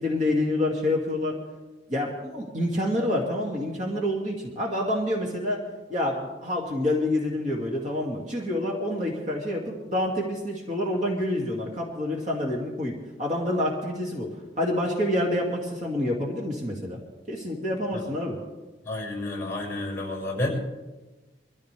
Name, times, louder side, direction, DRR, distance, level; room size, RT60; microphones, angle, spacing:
voice 1, 0.0-1.4 1.9-5.6 5.9-14.3 14.6-17.0 17.3-18.4, left 1 dB, 40° right, -2 dB, 2.4 m, -27 dB
voice 2, 18.8-20.5, left 2 dB, 10° left, -2 dB, 6.0 m, -30 dB
24.0 x 14.5 x 3.4 m, 1.2 s
head